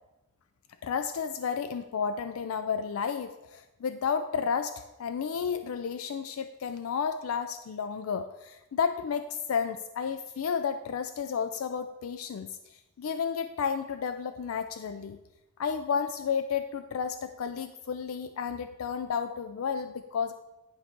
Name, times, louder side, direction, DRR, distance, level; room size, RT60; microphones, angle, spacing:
voice 1, 0.8-12.5 13.0-15.2 15.6-20.3, left 6 dB, 75° left, 10 dB, 0.4 m, -32 dB
10.0 x 4.6 x 4.4 m, 1.0 s
head